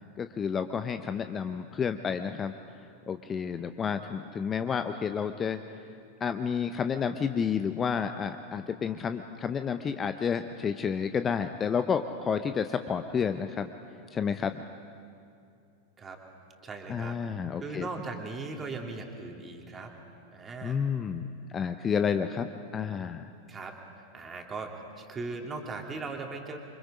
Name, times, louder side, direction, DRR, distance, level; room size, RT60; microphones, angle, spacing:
voice 1, 0.2-5.6 6.2-13.7 14.1-14.6 16.9-17.9 20.6-21.2 21.5-23.3, left 6 dB, 20° left, 9 dB, 0.7 m, -30 dB
voice 2, 16.6-17.1 17.6-19.9 20.3-20.8 23.5-23.8 24.1-26.6, right 3 dB, 20° right, 2 dB, 2.8 m, -38 dB
28.0 x 25.0 x 5.1 m, 2.4 s
figure-of-eight pair, 90°, 0 cm